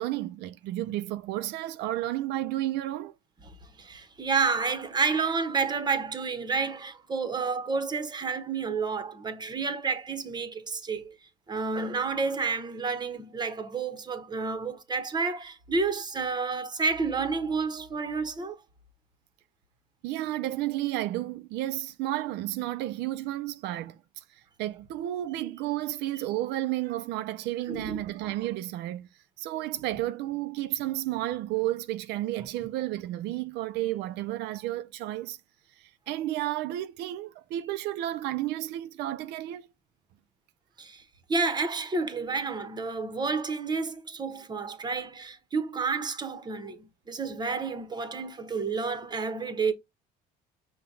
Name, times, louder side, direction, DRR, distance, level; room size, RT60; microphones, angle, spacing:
voice 1, 0.0-3.1 20.0-29.1 29.4-35.4 35.8-39.7, right 15 dB, 85° right, 0.4 m, -32 dB
voice 2, 3.8-11.2 11.5-18.6 27.7-28.0 40.8-41.0 41.3-49.7, right 4 dB, 25° right, 1.0 m, -30 dB
5.7 x 2.3 x 3.8 m
cardioid pair, 110°, 17 cm